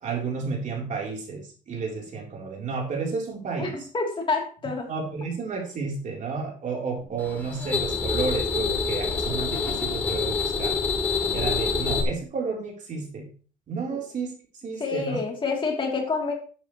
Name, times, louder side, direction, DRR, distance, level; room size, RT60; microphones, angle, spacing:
voice 1, 0.0-3.7 4.9-10.8 11.3-13.3 13.7-14.3 14.6-15.2, right 4 dB, 45° right, 0 dB, 3.7 m, -31 dB
voice 2, 3.6-4.9 13.9-14.0 14.8-16.3, left 4 dB, 30° left, 0 dB, 3.2 m, -28 dB
sound 1, 7.2-12.0, left 4 dB, 10° left, 2.4 m, -26 dB
12.0 x 8.9 x 3.2 m, 0.40 s
cardioid pair, 110°, 17 cm